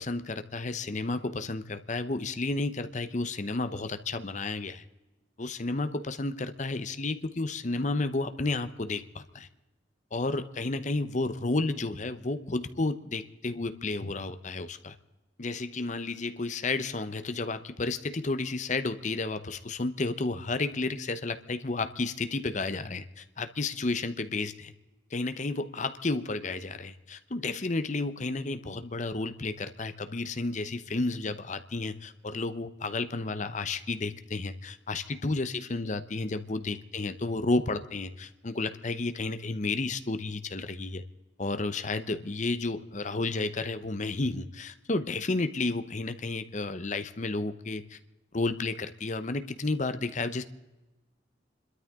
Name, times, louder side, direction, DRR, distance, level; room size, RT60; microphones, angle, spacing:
voice 1, 0.0-4.8 5.4-9.5 10.1-14.9 15.4-24.7 25.1-41.0 41.4-48.0 48.3-50.4, left 3 dB, 40° left, 11 dB, 0.8 m, -32 dB
29.0 x 13.0 x 3.7 m, 1.1 s
head